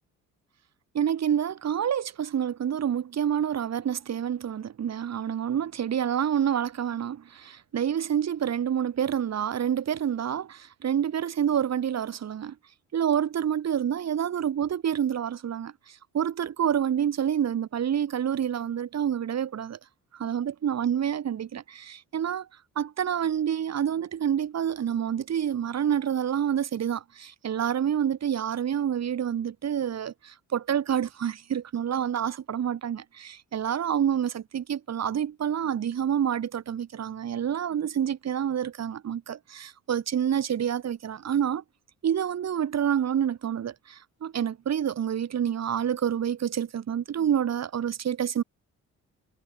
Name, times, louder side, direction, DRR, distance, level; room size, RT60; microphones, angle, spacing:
voice 1, 0.9-12.6 12.9-19.8 20.1-22.5 22.8-41.6 42.0-48.4, right 9 dB, 60° right, 7.2 m, -28 dB
cardioid pair, 90°, 30 cm